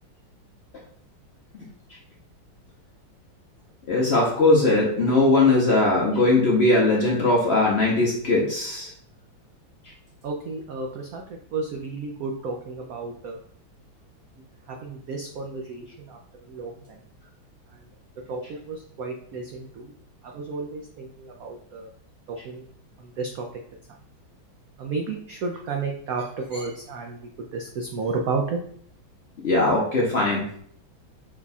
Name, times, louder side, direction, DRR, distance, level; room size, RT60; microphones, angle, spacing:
voice 1, 3.9-8.9 29.4-30.4, left 2 dB, 60° left, -3 dB, 0.6 m, -20 dB
voice 2, 10.2-13.4 14.7-16.2 16.5-17.0 17.7-17.8 18.3-19.9 20.2-21.9 22.3-22.6 23.0-23.5 24.8-27.2 27.5-28.6, right 4 dB, 90° right, 1 dB, 0.7 m, -32 dB
5.7 x 2.3 x 4.0 m, 0.63 s
omnidirectional pair, 2.2 m